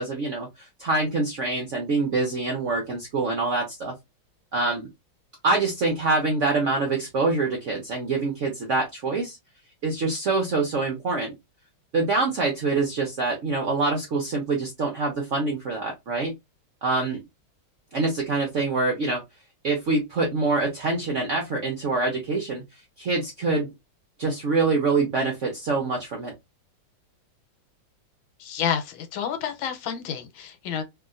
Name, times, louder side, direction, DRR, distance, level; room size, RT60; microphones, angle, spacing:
voice 1, 0.0-3.9 4.5-4.9 5.4-9.4 9.8-11.3 11.9-16.3 16.8-17.2 17.9-19.2 19.6-22.6 23.0-23.7 24.2-26.3, right 3 dB, 70° right, 0.7 m, -25 dB
voice 2, 28.4-30.8, left 8 dB, 80° left, 1.5 m, -29 dB
2.9 x 2.7 x 2.4 m
omnidirectional pair, 2.2 m